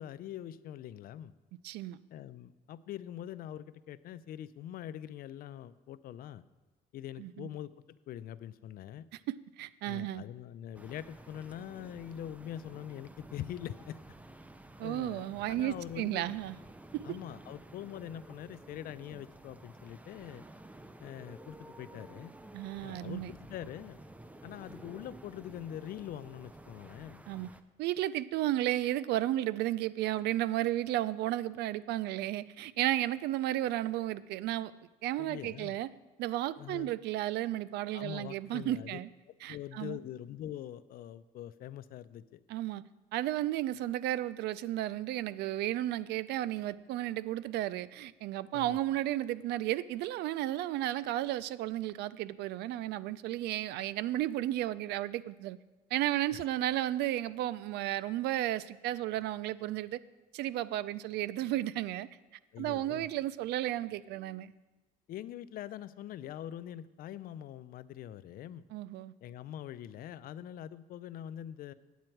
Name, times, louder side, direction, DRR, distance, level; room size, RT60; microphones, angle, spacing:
voice 1, 0.0-1.3 2.1-6.4 6.9-7.7 8.1-9.1 9.9-14.2 14.8-16.4 17.0-20.4 21.0-22.3 22.8-24.0 24.4-27.2 35.2-35.8 36.6-36.9 37.9-39.0 39.3-42.4 48.5-48.8 56.3-56.4 62.5-63.1 65.1-68.6 69.2-71.7, left 11 dB, 60° left, 15 dB, 0.4 m, -43 dB
voice 2, 1.6-2.0 7.2-7.5 9.6-10.2 14.8-16.6 16.9-17.2 22.5-23.3 27.3-27.5 27.8-34.7 35.0-35.9 36.2-39.1 39.4-40.0 42.5-42.8 43.1-55.6 55.9-60.0 60.3-62.1 62.6-64.5 68.7-69.1, right 14 dB, 80° right, 18 dB, 0.4 m, -33 dB
sound 1, 10.7-27.6, right 1 dB, 10° right, 0.5 m, -52 dB
9.2 x 8.6 x 4.6 m, 1.2 s
cardioid pair, 110°, 17 cm